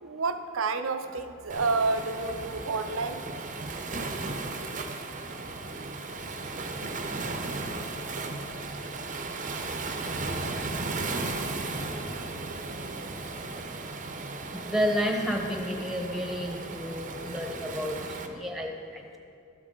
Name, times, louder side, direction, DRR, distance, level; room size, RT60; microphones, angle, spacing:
voice 1, 0.0-3.2, right 3 dB, 80° right, 8 dB, 0.6 m, -29 dB
Waves surf, 1.5-18.3, right 3 dB, 40° right, 0.7 m, -35 dB
voice 2, 14.5-19.2, equal, ahead, 2 dB, 0.9 m, -31 dB
13.0 x 8.0 x 3.8 m, 2.5 s
head